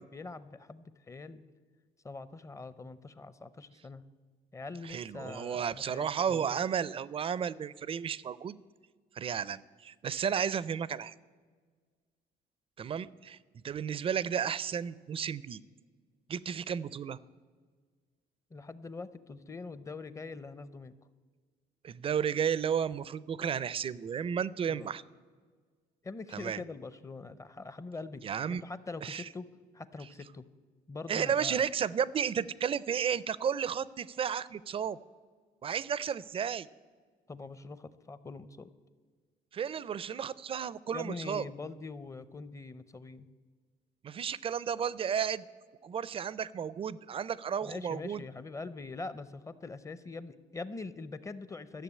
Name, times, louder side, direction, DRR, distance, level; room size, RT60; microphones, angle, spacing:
voice 1, 0.0-1.4 2.0-4.0 4.5-6.6 18.5-21.0 24.7-24.9 26.0-29.5 29.7-30.4 30.9-31.6 37.3-38.7 40.9-43.3 47.6-51.8, left 3 dB, 20° left, 15 dB, 0.6 m, -43 dB
voice 2, 4.8-8.6 9.2-11.1 12.8-13.4 13.6-15.6 16.3-17.2 21.8-25.0 26.3-26.6 28.2-28.6 29.0-29.3 31.1-35.0 35.6-36.7 39.5-41.5 44.0-45.4 45.8-48.2, right 7 dB, 35° right, 19 dB, 0.4 m, -33 dB
13.0 x 6.8 x 8.4 m, 1.5 s
cardioid pair, 110°, 17 cm